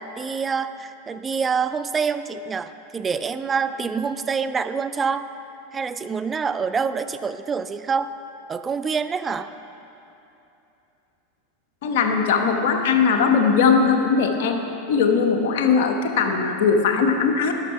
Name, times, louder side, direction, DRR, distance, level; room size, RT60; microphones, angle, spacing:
voice 1, 0.0-5.2 5.7-8.1 8.5-9.5, right 5 dB, 25° right, 12 dB, 0.3 m, -26 dB
voice 2, 11.8-14.6 14.9-17.5, left 5 dB, 70° left, 4 dB, 1.0 m, -19 dB
11.0 x 6.4 x 5.8 m, 2.9 s
hypercardioid pair, 100°, 0 cm